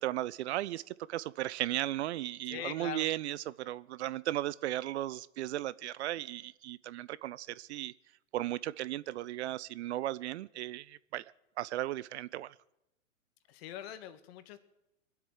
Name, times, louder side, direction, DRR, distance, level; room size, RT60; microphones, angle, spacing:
voice 1, 0.0-7.9 8.3-11.3 11.6-12.5, right 14 dB, 55° right, 0.6 m, -36 dB
voice 2, 2.5-3.1 13.5-14.6, left 10 dB, 50° left, 1.7 m, -42 dB
22.5 x 8.1 x 7.3 m
hypercardioid pair, 105°, 39 cm